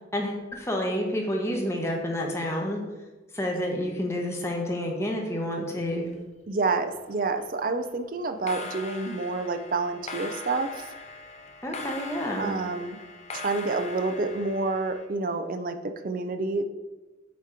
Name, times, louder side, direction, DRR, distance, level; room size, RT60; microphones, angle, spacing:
voice 1, 0.1-2.8 3.3-6.1 11.6-12.5, equal, 15° left, 0 dB, 0.9 m, -29 dB
sound 1, 5.8-6.7 7.0-7.4 8.3-15.1, left 2 dB, 35° left, 0.5 m, -41 dB
voice 2, 6.5-10.8 12.4-13.0 13.4-16.6, right 3 dB, 45° right, 8 dB, 0.5 m, -28 dB
8.2 x 3.0 x 5.0 m, 1.2 s
head